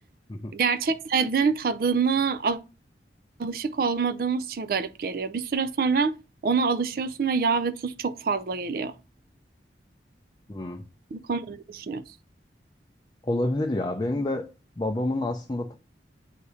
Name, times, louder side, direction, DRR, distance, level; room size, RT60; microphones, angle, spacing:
voice 1, 0.5-2.6 3.4-6.2 6.4-8.9 11.1-12.0, right 5 dB, 50° right, 0.4 m, -26 dB
voice 2, 10.5-10.8 13.2-14.4 14.8-15.7, left 1 dB, 25° left, 0.5 m, -28 dB
8.2 x 2.7 x 4.8 m
head